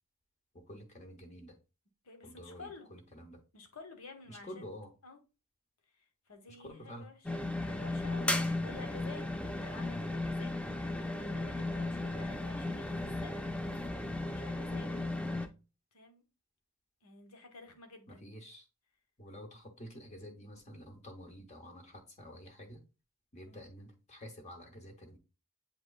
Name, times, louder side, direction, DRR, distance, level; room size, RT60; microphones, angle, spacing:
voice 1, 0.5-1.6 2.2-3.4 4.3-4.9 6.5-7.1 18.1-18.7 19.2-22.8 23.3-25.2, equal, 30° left, 0.8 m, -49 dB
voice 2, 2.0-2.9 3.5-4.6 5.0-5.2 6.0-7.2 7.6-10.5 10.8-13.5 14.2-14.9 15.9-16.2 17.0-18.3 23.4-23.7, left 3 dB, 80° left, 1.1 m, -52 dB
sound 1, 7.3-15.5, left 2 dB, 5° left, 0.3 m, -35 dB
7.8 x 2.9 x 2.3 m
head